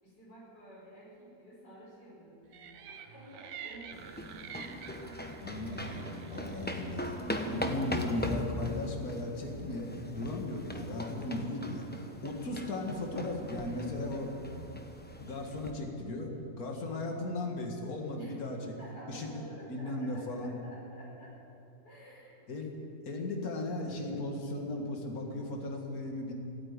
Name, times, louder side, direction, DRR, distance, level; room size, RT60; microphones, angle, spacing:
voice 1, 0.0-4.2 4.5-4.8 6.2-6.7 10.8-11.0 18.1-18.4 18.8-21.4 21.8-22.5, right 1 dB, 90° left, -6 dB, 5.6 m, -51 dB
sound 1, 2.5-8.0, right 8 dB, 85° right, 1.4 m, -49 dB
sound 2, 3.9-15.7, left 1 dB, 10° left, 0.7 m, -40 dB
voice 2, 5.4-7.2 7.4-14.3 15.2-18.8 19.1-19.3 19.7-20.6 22.5-22.7 23.1-26.3, left 2 dB, 60° left, 1 dB, 2.2 m, -36 dB
16.0 x 8.9 x 9.6 m, 2.7 s
omnidirectional pair, 1.8 m